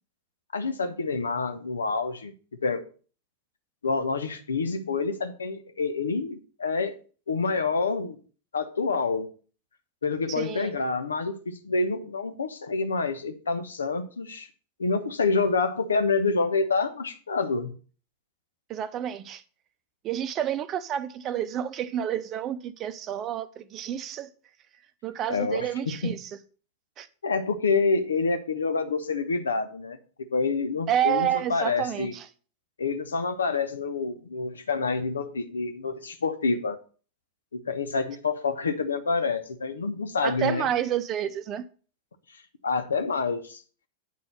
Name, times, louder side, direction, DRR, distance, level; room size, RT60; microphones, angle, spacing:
voice 1, 0.5-2.3 2.6-2.8 3.8-7.0 7.3-8.2 8.5-9.3 10.0-14.5 14.8-17.7 25.3-26.2 27.2-32.1 32.8-36.8 37.5-40.7 42.6-43.6, left 4 dB, 70° left, 1.0 m, -27 dB
voice 2, 10.3-10.7 18.7-19.4 20.0-24.3 25.0-26.3 27.0-27.1 30.9-32.3 40.2-41.6, right 10 dB, 30° right, 0.7 m, -29 dB
9.4 x 4.2 x 6.5 m
figure-of-eight pair, 90°, 0 cm